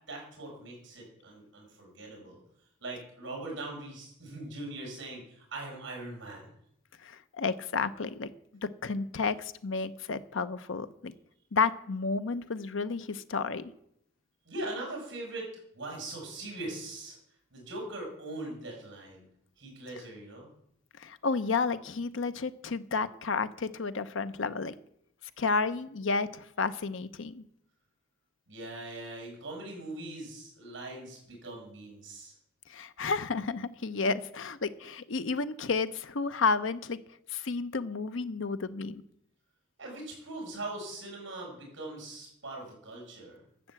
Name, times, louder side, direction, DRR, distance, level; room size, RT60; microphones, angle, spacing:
voice 1, 0.1-2.4 2.8-6.5 14.5-15.5 15.7-17.2 17.5-19.3 19.6-20.5 28.5-32.3 39.8-43.4, right 2 dB, 65° right, 0 dB, 6.7 m, -41 dB
voice 2, 7.0-8.3 8.6-11.1 11.5-13.7 21.0-24.7 25.4-27.4 32.7-37.0 37.3-39.0, left 4 dB, 70° left, 13 dB, 0.7 m, -31 dB
12.0 x 7.7 x 7.7 m, 0.74 s
head